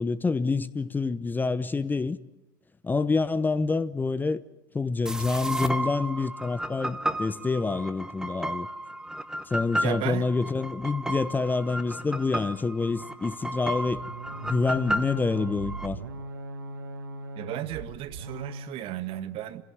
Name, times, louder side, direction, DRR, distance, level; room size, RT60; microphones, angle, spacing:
voice 1, 0.0-2.2 2.8-4.4 4.7-8.7 9.5-14.0 14.4-16.0, left 4 dB, 15° left, 0.9 m, -27 dB
sound 1, 5.1-15.9, right 1 dB, 5° right, 1.6 m, -33 dB
voice 2, 9.8-10.3 17.4-19.6, right 12 dB, 55° right, 1.8 m, -34 dB
sound 2, 13.9-18.8, right 2 dB, 85° right, 1.4 m, -39 dB
27.0 x 16.5 x 9.4 m
hypercardioid pair, 80°, 11 cm